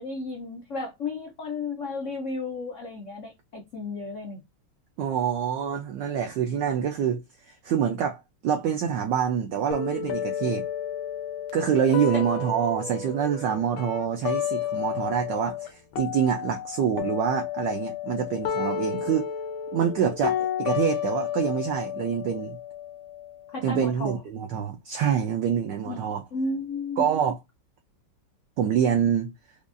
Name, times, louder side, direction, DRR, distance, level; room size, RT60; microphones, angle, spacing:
voice 1, 0.0-4.4 23.5-24.2 25.9-27.0, left 3 dB, 90° left, 0.6 m, -33 dB
voice 2, 5.0-10.6 11.5-19.3 19.7-22.6 23.6-26.2 27.0-27.3 28.6-29.3, right 8 dB, 75° right, 1.0 m, -26 dB
sound 1, 9.7-15.7 15.9-23.7, left 8 dB, 70° left, 1.4 m, -32 dB
5.1 x 2.3 x 2.5 m
omnidirectional pair, 2.4 m